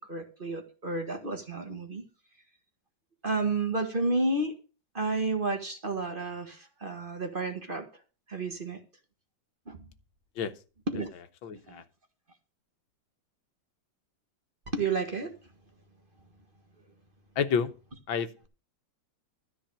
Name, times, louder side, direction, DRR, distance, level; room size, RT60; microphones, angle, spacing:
voice 1, 0.0-2.0 3.2-4.6 4.9-7.9 8.3-8.8 9.7-9.9 10.9-11.1 11.5-11.8 14.7-15.4, right 3 dB, 30° right, 5 dB, 1.6 m, -31 dB
voice 2, 11.4-11.8 17.4-17.7 18.1-18.3, left 7 dB, 85° left, 10 dB, 1.8 m, -29 dB
13.0 x 4.7 x 8.7 m, 0.33 s
omnidirectional pair, 2.1 m